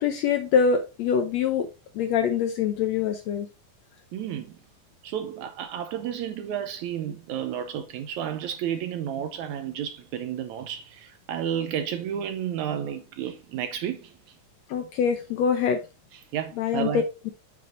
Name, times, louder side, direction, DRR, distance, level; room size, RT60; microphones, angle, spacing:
voice 1, 0.0-1.7 1.9-3.5 14.7-15.8 16.6-16.9, left 7 dB, 75° left, 1.6 m, -24 dB
voice 2, 4.1-4.6 5.0-14.1 16.3-17.0, right 9 dB, 75° right, 1.9 m, -31 dB
8.0 x 7.5 x 2.6 m
omnidirectional pair, 3.8 m